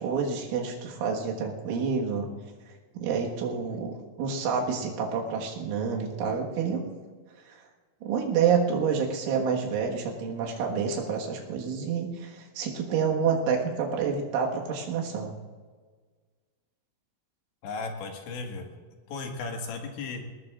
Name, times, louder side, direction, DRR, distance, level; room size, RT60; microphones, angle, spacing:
voice 1, 0.0-2.3 3.0-6.9 7.5-7.6 8.0-15.3, right 6 dB, 90° right, 0 dB, 4.1 m, -28 dB
voice 2, 17.6-18.7 19.1-20.2, left 4 dB, 75° left, 2 dB, 4.0 m, -35 dB
22.5 x 18.5 x 2.5 m, 1.5 s
omnidirectional pair, 5.4 m